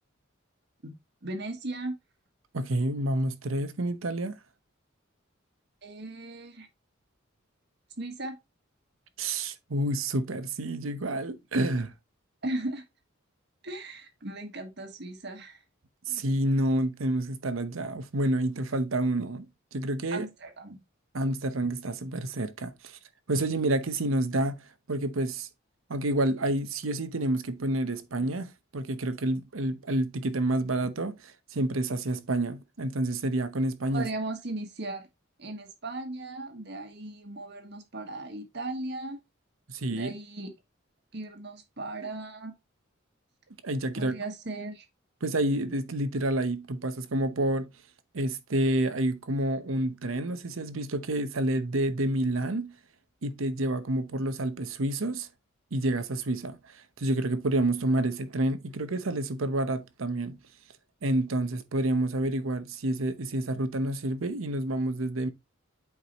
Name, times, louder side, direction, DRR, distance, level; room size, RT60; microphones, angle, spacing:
voice 1, 1.2-1.9 5.8-6.7 8.0-8.4 12.4-12.8 13.6-15.6 20.1-20.8 33.9-35.1 35.4-39.2 39.9-40.5 41.1-42.5 43.9-44.9, right 2 dB, 55° right, 1.4 m, -37 dB
voice 2, 2.5-4.4 9.2-11.9 16.1-19.5 19.7-20.3 21.1-23.0 23.3-24.5 24.9-25.5 25.9-34.1 39.7-40.1 43.6-44.1 45.2-47.7 48.1-52.7 53.2-55.3 55.7-60.4 61.0-65.3, right 1 dB, 80° right, 0.8 m, -29 dB
8.4 x 4.7 x 2.9 m
head